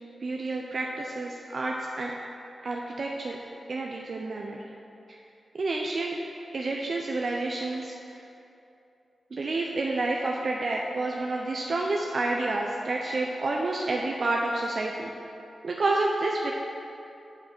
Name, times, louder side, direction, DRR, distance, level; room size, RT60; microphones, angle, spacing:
voice 1, 0.2-2.1 2.6-3.4 3.7-4.6 5.6-6.1 6.5-7.9 9.3-15.1 15.6-16.5, right 2 dB, 60° right, -1 dB, 0.6 m, -29 dB
6.6 x 6.0 x 6.1 m, 2.8 s
cardioid pair, 45°, 0 cm